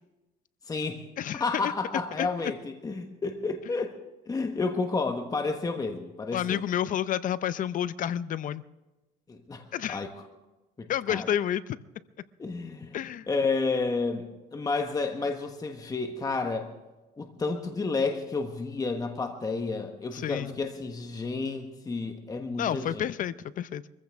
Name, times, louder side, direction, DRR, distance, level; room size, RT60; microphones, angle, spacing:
voice 1, 0.7-1.0 1.3-4.0 4.3-6.6 9.3-10.1 10.8-11.3 12.4-13.0 13.3-16.7 17.2-23.1, left 3 dB, 20° left, 1.2 m, -31 dB
voice 2, 1.2-1.7 2.2-2.3 6.3-8.6 9.7-10.0 10.9-11.8 12.9-13.3 20.1-20.5 22.6-23.8, left 10 dB, 50° left, 0.6 m, -30 dB
23.5 x 15.0 x 3.5 m
cardioid pair, 110°, 17 cm